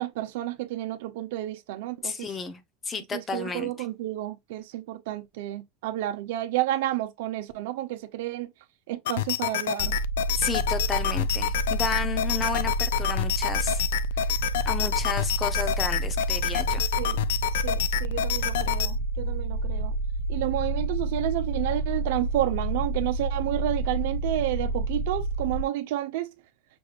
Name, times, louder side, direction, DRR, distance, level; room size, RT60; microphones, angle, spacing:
voice 1, 0.0-2.3 3.1-8.5 8.9-10.0 17.0-17.2 17.5-20.0 20.3-26.3, right 14 dB, 70° right, 0.9 m, -30 dB
voice 2, 2.0-3.7 10.4-13.8 14.6-16.9, left 5 dB, 20° left, 0.8 m, -32 dB
sound 1, 9.1-18.9, left 12 dB, 90° left, 0.4 m, -28 dB
sound 2, 9.8-25.6, right 2 dB, 45° left, 1.0 m, -29 dB
6.2 x 3.3 x 2.5 m
supercardioid pair, 155°, 0 cm